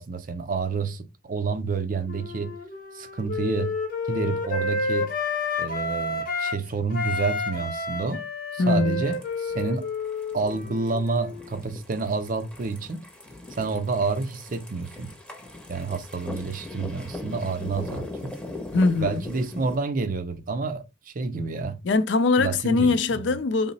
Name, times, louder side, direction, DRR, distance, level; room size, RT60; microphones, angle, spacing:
voice 1, 0.0-2.5 2.9-3.7 4.1-5.1 5.6-8.2 8.5-9.9 10.3-13.1 13.6-15.1 15.7-18.3 19.0-21.8 22.4-23.2, right 4 dB, 45° right, 0.5 m, -29 dB
Wind instrument woodwind instrument, 2.1-6.6 6.9-11.4, left 3 dB, 50° left, 0.8 m, -30 dB
voice 2, 8.6-9.0 18.7-19.2 21.8-23.7, left 3 dB, 65° left, 0.4 m, -22 dB
sound 1, 8.9-19.8, left 2 dB, 5° left, 0.6 m, -40 dB
3.8 x 2.0 x 3.9 m
head